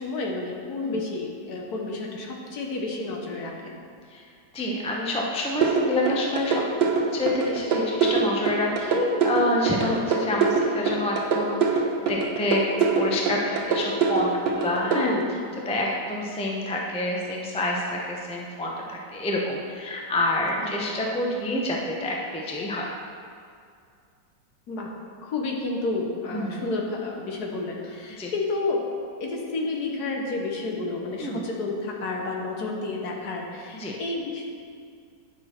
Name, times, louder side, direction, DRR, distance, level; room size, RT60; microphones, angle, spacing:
voice 1, 0.0-3.7 14.9-15.3 20.6-20.7 24.7-24.9 25.2-28.8 29.2-34.5, left 3 dB, 65° left, 0 dB, 1.5 m, -30 dB
voice 2, 4.5-11.8 12.1-12.6 12.9-15.1 15.7-22.9 26.3-26.6 28.2-28.3 31.2-31.4 33.7-33.9, left 1 dB, 10° left, -2 dB, 0.3 m, -28 dB
sound 1, 5.6-15.0, right 5 dB, 55° right, 0.8 m, -23 dB
9.7 x 6.1 x 4.4 m, 2.3 s
omnidirectional pair, 1.9 m